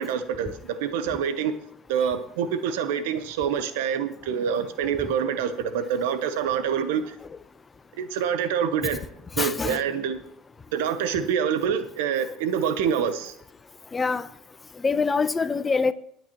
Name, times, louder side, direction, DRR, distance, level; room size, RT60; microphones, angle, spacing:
voice 1, 0.0-1.5 1.9-7.2 8.0-9.0 9.4-10.2 10.7-13.4, right 7 dB, 85° right, 1.0 m, -26 dB
voice 2, 9.4-9.8 13.9-14.3 14.8-15.9, left 4 dB, 25° left, 0.8 m, -24 dB
18.5 x 9.2 x 3.1 m
supercardioid pair, 85°, 0 cm